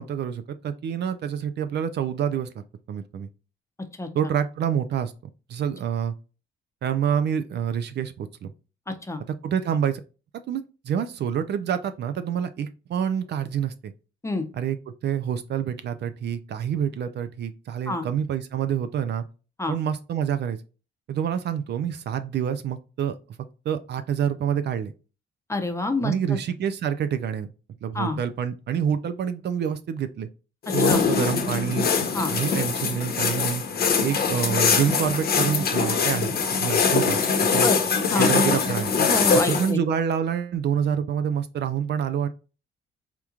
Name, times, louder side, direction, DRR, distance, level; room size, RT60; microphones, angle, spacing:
voice 1, 0.0-2.5 2.9-3.3 4.1-5.1 5.5-6.1 6.8-8.5 9.4-10.0 10.5-13.9 14.5-14.8 15.0-19.2 19.7-20.6 21.1-23.2 23.7-24.9 26.0-27.5 27.8-30.3 30.7-31.9 32.3-33.6 34.0-36.3 36.6-37.2 37.5-37.7 38.2-38.9 39.5-42.3, right 8 dB, 60° right, 0.5 m, -27 dB
voice 2, 8.9-9.2 14.2-14.5 17.9-18.1 19.6-19.7 25.5-26.4 27.9-28.2 30.9-31.0 32.1-32.3 37.6-37.8 38.1-38.3 39.1-39.8, left 2 dB, 15° left, 0.7 m, -27 dB
sound 1, 30.7-39.7, left 5 dB, 50° left, 0.8 m, -23 dB
3.6 x 2.9 x 2.3 m
cardioid pair, 90°, 20 cm